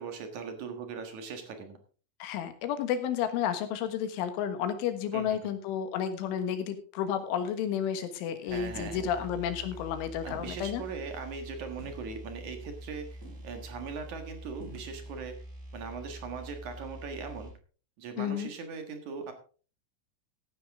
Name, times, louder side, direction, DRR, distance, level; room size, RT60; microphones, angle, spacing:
voice 1, 0.0-1.8 5.1-5.5 8.4-9.3 10.2-13.2 13.4-15.4 15.7-17.5 18.0-19.3, right 5 dB, 60° right, 5 dB, 2.2 m, -40 dB
voice 2, 2.2-10.8 18.2-18.5, left 9 dB, 85° left, 9 dB, 3.9 m, -31 dB
sound 1, 7.4-7.7 8.7-9.3 9.7-9.9 10.2-11.3 11.8-12.5 12.8-12.9 13.2-13.9 14.6-15.1, right 2 dB, 35° right, 1.2 m, -51 dB
sound 2, 8.5-17.6, right 1 dB, 90° right, 6.6 m, -45 dB
15.5 x 10.0 x 3.6 m, 0.40 s
omnidirectional pair, 5.4 m